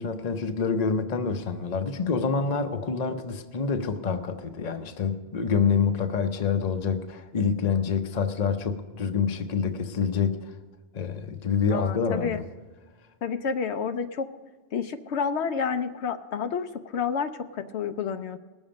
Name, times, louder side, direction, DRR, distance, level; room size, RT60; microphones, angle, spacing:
voice 1, 0.0-10.4 10.9-12.4, left 6 dB, 40° left, 7 dB, 0.8 m, -27 dB
voice 2, 11.7-12.4 13.2-14.3 14.7-18.4, left 6 dB, 75° left, 8 dB, 0.9 m, -29 dB
19.5 x 7.2 x 5.2 m, 1.4 s
omnidirectional pair, 1.1 m